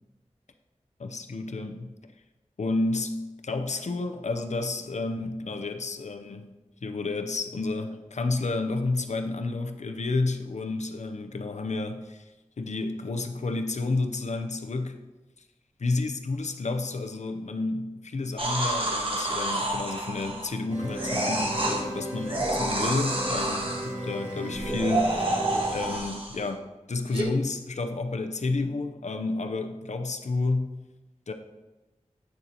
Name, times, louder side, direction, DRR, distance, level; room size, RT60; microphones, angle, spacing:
voice 1, 1.0-1.9 2.6-3.2 3.4-6.5 6.8-12.2 12.6-15.0 15.8-25.3 25.7-30.7 31.3-31.4, left 3 dB, 75° left, 6 dB, 0.6 m, -30 dB
sound 1, 18.4-20.6 20.9-21.8 22.2-23.9 24.5-26.5 27.1-27.2, right 1 dB, 50° right, 1.4 m, -29 dB
sound 2, 20.7-26.0, equal, 70° right, 2.5 m, -35 dB
9.0 x 6.6 x 2.9 m, 1.1 s
wide cardioid pair, 55°, 12 cm